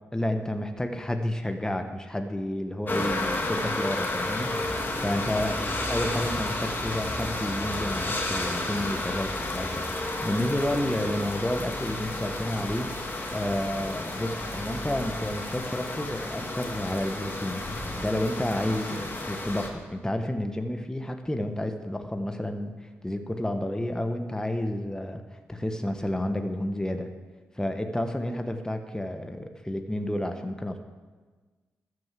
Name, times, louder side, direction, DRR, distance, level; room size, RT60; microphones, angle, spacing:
voice 1, 0.1-5.5 5.9-12.9 13.3-22.8 23.0-25.2 25.5-27.1 27.5-30.8, left 1 dB, 10° left, 6 dB, 1.3 m, -30 dB
sound 1, 2.9-19.7, left 2 dB, 35° left, 2.6 m, -32 dB
13.0 x 8.0 x 7.6 m, 1.4 s
hypercardioid pair, 40°, 6 cm